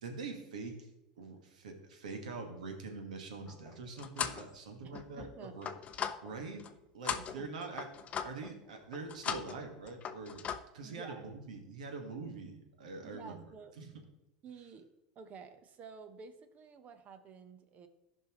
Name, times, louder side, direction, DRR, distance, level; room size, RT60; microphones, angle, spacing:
voice 1, 0.0-0.7 1.2-5.7 6.0-6.6 6.9-7.9 8.2-10.4 10.7-13.4 13.8-13.9, right 4 dB, 90° right, 4 dB, 1.5 m, -44 dB
sound 1, 3.5-4.5 4.9-6.7 7.0-8.5 8.9-9.6 9.9-10.6, left 8 dB, 35° left, 0.6 m, -39 dB
voice 2, 5.2-5.5 7.4-7.5 10.8-11.3 13.0-13.8 14.4-14.9 15.1-17.9, right 5 dB, 40° right, 9 dB, 1.0 m, -51 dB
14.0 x 5.5 x 3.0 m, 0.96 s
supercardioid pair, 105°, 4 cm